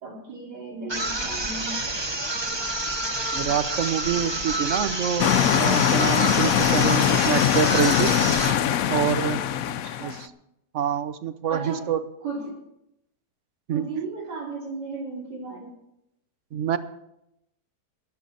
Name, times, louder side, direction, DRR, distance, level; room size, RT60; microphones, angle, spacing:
voice 1, 0.0-1.8 9.7-10.2 11.5-11.8 12.2-12.6 13.7-15.8, right 4 dB, 85° right, -1 dB, 3.4 m, -35 dB
sound 1, 0.9-8.7, right 2 dB, 20° right, 0.9 m, -28 dB
voice 2, 3.3-8.1 8.9-9.4 10.0-10.3 10.7-12.0 13.7-13.9 16.5-16.8, right 8 dB, 55° right, 12 dB, 0.9 m, -26 dB
sound 2, 5.2-10.2, left 10 dB, 65° left, 0.9 m, -22 dB
15.5 x 11.5 x 4.1 m, 0.83 s
omnidirectional pair, 1.7 m